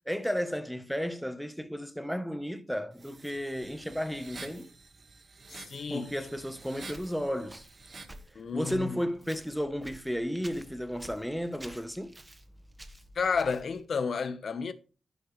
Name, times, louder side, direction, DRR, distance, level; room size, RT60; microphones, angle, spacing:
voice 1, 0.1-4.7 5.9-7.7 8.5-12.1, equal, ahead, 1.0 m, -33 dB
sound 1, 2.9-8.2, right 3 dB, 40° right, 1.5 m, -49 dB
voice 2, 5.5-6.1 8.3-9.0 13.1-14.7, left 5 dB, 55° left, 1.0 m, -31 dB
Walk footsteps, 6.9-13.9, right 1 dB, 15° right, 1.3 m, -52 dB
10.5 x 9.9 x 3.2 m
wide cardioid pair, 140°, 0 cm